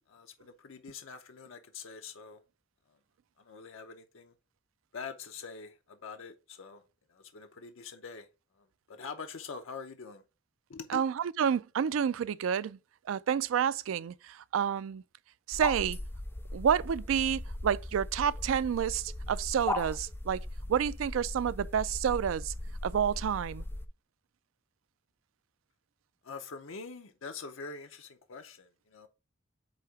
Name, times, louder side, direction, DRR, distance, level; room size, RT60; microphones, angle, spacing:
voice 1, 0.1-2.4 3.5-4.3 4.9-6.8 7.3-8.3 8.9-10.2 10.7-11.0 26.2-29.1, left 5 dB, 85° left, 0.7 m, -44 dB
voice 2, 10.9-12.8 13.1-15.0 15.5-16.0 16.5-20.4 20.7-22.5 22.8-23.6, right 8 dB, 85° right, 0.3 m, -29 dB
sound 1, 15.5-23.9, left 1 dB, 10° left, 0.4 m, -38 dB
8.2 x 2.8 x 4.6 m
head